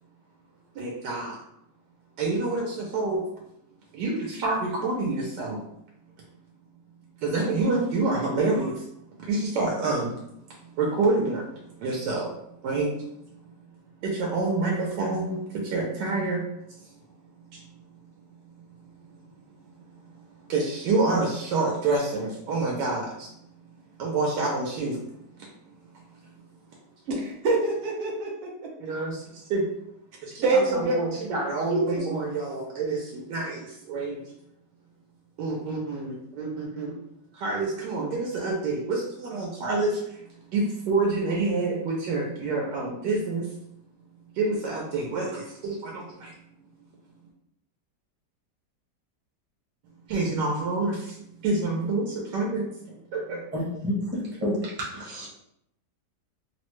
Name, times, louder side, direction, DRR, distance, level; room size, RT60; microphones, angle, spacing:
voice 1, 0.7-1.4 2.2-3.2 3.9-5.6 7.2-8.9 9.2-10.1 10.6-11.4 11.8-12.3 12.6-13.0 14.0-16.5 17.5-17.6 19.7-19.8 20.5-23.3 24.0-25.0 25.4-25.5 28.8-29.7 30.2-34.2 35.4-37.0 37.3-40.2 40.5-43.5 44.4-46.3 50.1-51.2 51.4-53.4, right 3 dB, 85° right, -2 dB, 1.2 m, -27 dB
voice 2, 27.1-28.5 30.4-31.3 31.7-32.1, right 2 dB, 70° right, -3 dB, 0.5 m, -25 dB
voice 3, 53.5-55.3, left 1 dB, 10° right, -6 dB, 0.5 m, -30 dB
3.4 x 2.1 x 3.0 m, 0.77 s
omnidirectional pair, 1.8 m